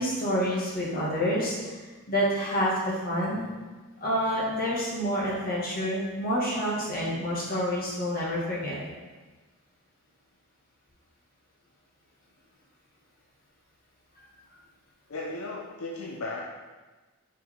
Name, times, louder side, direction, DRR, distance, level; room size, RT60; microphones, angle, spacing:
voice 1, 0.0-1.8 2.1-3.4 4.0-8.8, equal, 40° left, -6 dB, 1.8 m, -28 dB
voice 2, 15.1-16.4, left 2 dB, 70° left, -2 dB, 0.6 m, -35 dB
5.8 x 5.0 x 3.6 m, 1.3 s
head